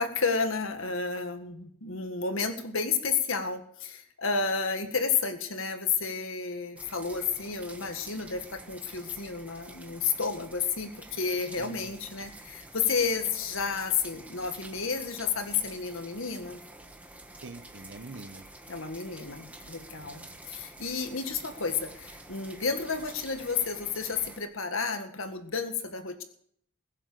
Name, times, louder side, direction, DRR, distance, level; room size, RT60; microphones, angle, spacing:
voice 1, 0.0-16.6 18.7-26.2, left 5 dB, 70° left, 7 dB, 1.8 m, -31 dB
sound 1, 6.8-24.4, right 2 dB, 5° right, 1.3 m, -48 dB
voice 2, 11.6-12.2 17.4-18.4 20.0-20.4, right 2 dB, 55° right, 10 dB, 0.9 m, -46 dB
21.5 x 7.7 x 6.8 m, 0.66 s
head